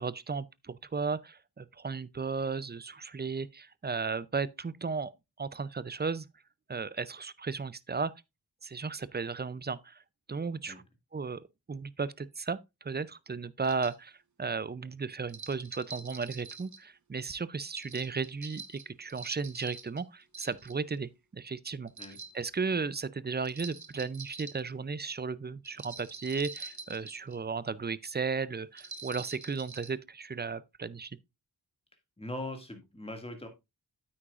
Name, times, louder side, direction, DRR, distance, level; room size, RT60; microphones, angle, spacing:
voice 1, 0.0-5.1 5.4-6.3 6.7-8.1 8.6-10.0 10.3-10.7 11.1-11.4 11.7-21.9 22.3-31.1, right 4 dB, 25° right, 0.4 m, -35 dB
sound 1, 13.6-14.0 15.3-16.8 17.7-20.0 20.3-21.0 21.9-22.4 23.4-24.6 25.6-27.4 28.8-29.9, right 4 dB, 45° right, 1.1 m, -45 dB
voice 2, 32.2-33.5, left 1 dB, 15° left, 2.0 m, -40 dB
8.9 x 8.6 x 2.4 m
wide cardioid pair, 65°, 40 cm